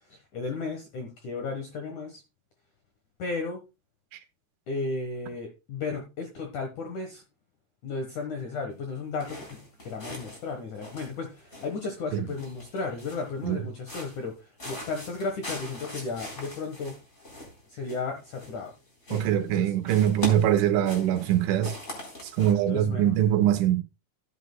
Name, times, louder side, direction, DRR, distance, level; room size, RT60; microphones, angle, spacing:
voice 1, 0.0-2.2 3.2-3.6 4.7-7.2 7.8-17.0 17.7-18.7 19.1-19.2 19.5-19.7 22.4-23.2, left 4 dB, 65° left, 1.9 m, -34 dB
sound 1, 9.2-10.5 10.7-11.9 12.3-13.4 13.8-14.3 14.6-18.8 19.0-19.6 19.8-22.5, left 1 dB, 15° left, 3.5 m, -41 dB
voice 2, 19.1-21.8 22.4-23.8, right 11 dB, 85° right, 3.5 m, -23 dB
14.0 x 9.6 x 2.2 m
omnidirectional pair, 5.5 m